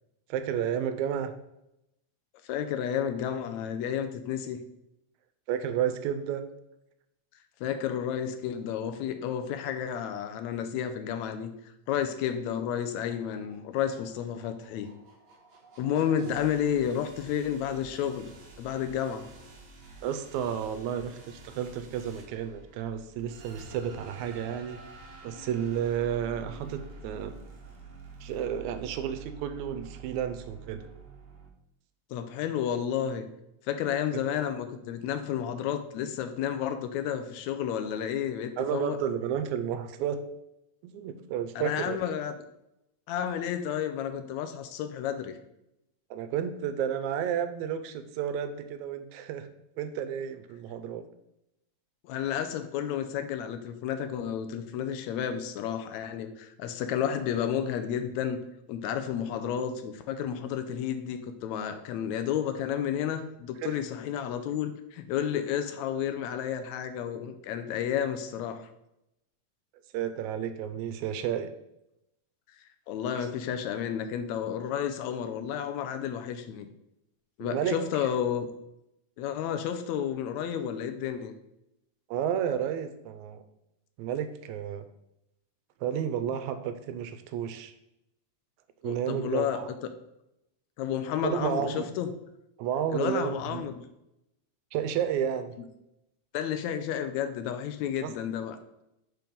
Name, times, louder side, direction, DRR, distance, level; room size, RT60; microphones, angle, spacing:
voice 1, 0.3-1.3 5.5-6.4 16.3-16.4 20.0-24.8 25.2-27.3 28.2-30.9 34.1-34.2 38.6-40.2 40.8-42.0 46.1-49.5 49.8-51.0 63.6-63.8 69.9-71.5 73.2-73.3 77.4-78.1 82.1-83.4 84.0-84.8 85.8-87.7 88.8-89.7 91.2-91.8 92.6-93.7 94.7-95.5 98.0-98.1, right 9 dB, 85° right, 10 dB, 2.0 m, -31 dB
voice 2, 2.4-4.6 7.6-11.5 11.9-14.9 15.8-18.3 18.6-19.3 32.1-33.3 33.7-39.0 41.6-42.3 43.1-45.3 52.0-58.4 58.7-68.7 72.9-76.7 77.4-78.5 79.2-81.3 88.8-89.6 90.8-92.1 92.9-93.8 96.3-98.6, left 9 dB, 80° left, 8 dB, 1.8 m, -31 dB
sound 1, 12.6-31.5, right 4 dB, 50° right, 1.4 m, -49 dB
5.3 x 4.6 x 5.2 m, 0.86 s
omnidirectional pair, 3.3 m